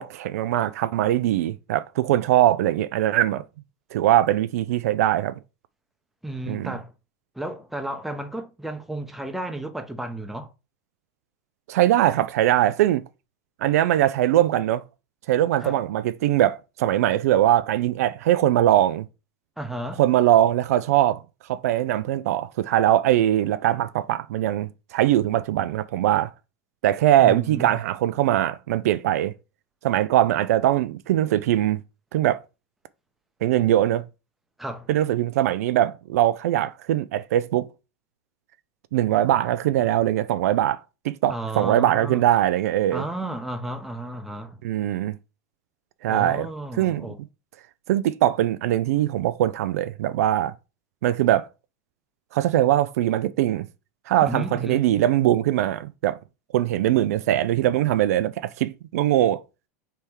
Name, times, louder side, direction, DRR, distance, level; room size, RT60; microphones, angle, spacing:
voice 1, 0.0-3.5 3.9-5.4 6.5-6.7 11.7-13.0 13.6-14.8 15.3-19.1 20.0-21.2 21.5-26.3 26.8-29.3 29.8-31.8 32.1-32.4 33.4-34.0 34.9-37.7 38.9-43.0 44.6-45.1 46.0-46.5 46.8-47.1 47.9-50.5 51.0-51.5 52.3-53.7 54.1-56.2 56.5-59.4, right 13 dB, 75° right, 0.3 m, -21 dB
voice 2, 6.2-6.9 7.3-10.5 15.6-15.8 19.6-20.0 27.2-27.8 34.6-34.9 41.3-42.2 42.9-44.6 46.1-47.2 54.2-54.9, right 1 dB, ahead, 0.8 m, -33 dB
3.4 x 3.3 x 4.4 m
hypercardioid pair, 110°, 8 cm